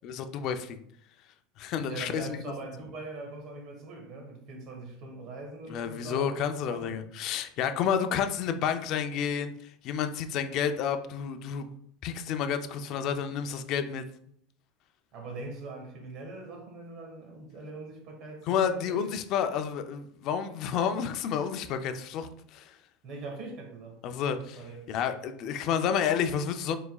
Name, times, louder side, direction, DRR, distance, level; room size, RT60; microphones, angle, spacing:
voice 1, 0.0-0.8 1.6-2.4 5.7-9.5 9.8-11.7 12.0-14.0 18.5-22.8 24.0-24.6 24.9-26.8, left 8 dB, 50° left, 8 dB, 0.4 m, -30 dB
voice 2, 1.8-6.3 6.7-7.0 15.1-19.1 23.0-24.0 24.3-24.8, right 3 dB, 45° right, 2 dB, 1.4 m, -42 dB
4.6 x 4.0 x 2.3 m, 0.67 s
supercardioid pair, 135°, 0 cm